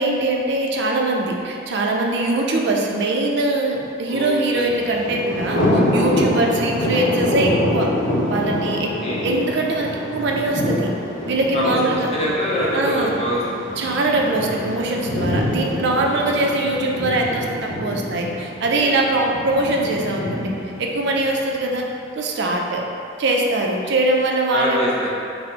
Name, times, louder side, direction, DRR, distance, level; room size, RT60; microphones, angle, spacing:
voice 1, 0.0-5.6 5.9-7.9 8.3-8.9 9.2-10.9 11.2-12.1 12.7-13.1 13.8-20.5 20.8-21.8 22.2-22.8 23.2-24.9, right 2 dB, 60° right, 0 dB, 0.5 m, -22 dB
voice 2, 4.1-4.7 8.8-9.3 11.5-13.4 16.0-16.4 18.7-18.8 23.8-23.9 24.5-25.1, equal, 35° left, -7 dB, 0.8 m, -25 dB
Thunder, 4.7-21.7, left 1 dB, 85° left, 0.8 m, -25 dB
4.1 x 2.0 x 4.4 m, 2.6 s
head